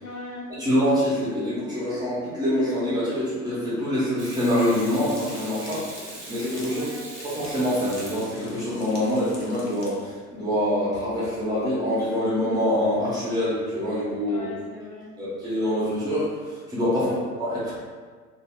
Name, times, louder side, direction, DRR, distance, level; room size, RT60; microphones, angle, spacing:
voice 1, 0.0-0.5 6.6-7.1 14.3-15.1 16.9-17.2, left 2 dB, 65° left, -4 dB, 0.8 m, -39 dB
voice 2, 0.6-5.9 6.3-6.8 7.2-14.4 15.2-17.1 17.4-17.7, left 1 dB, 10° right, -9 dB, 0.6 m, -25 dB
Water tap faucet / Sink (filling or washing), 4.2-8.9 11.4-11.5, right 3 dB, 45° right, 0.7 m, -42 dB
sound 1, 4.7-9.9, left 2 dB, 40° left, 0.7 m, -44 dB
2.4 x 2.0 x 3.4 m, 1.5 s
figure-of-eight pair, 85°, 48 cm